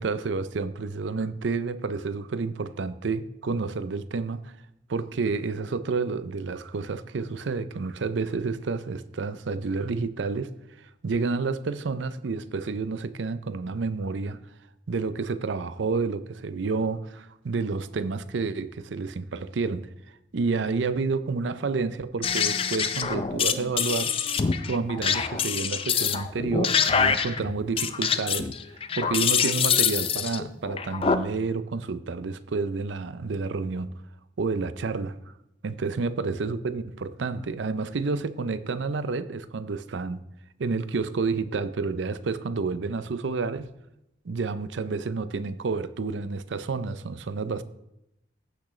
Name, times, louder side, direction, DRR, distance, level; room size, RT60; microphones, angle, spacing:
voice 1, 0.0-4.6 4.9-10.5 10.8-14.4 14.9-19.9 20.3-24.1 24.6-28.5 29.0-33.9 34.4-35.2 35.6-40.2 40.6-43.7 44.2-47.6, right 4 dB, 75° right, 0.5 m, -29 dB
sound 1, 22.2-31.2, left 7 dB, 30° left, 0.4 m, -25 dB
15.0 x 6.1 x 3.2 m
head